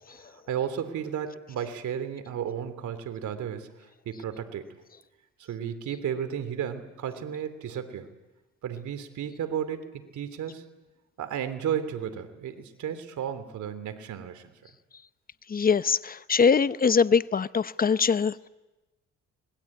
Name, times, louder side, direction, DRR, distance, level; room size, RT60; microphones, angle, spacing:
voice 1, 0.1-4.6 5.4-8.1 8.6-10.6 11.2-14.5, right 8 dB, 75° right, 9 dB, 3.1 m, -33 dB
voice 2, 15.5-18.5, left 6 dB, 30° left, 15 dB, 0.8 m, -23 dB
25.5 x 20.5 x 8.6 m, 1.1 s
cardioid pair, 90°, 30 cm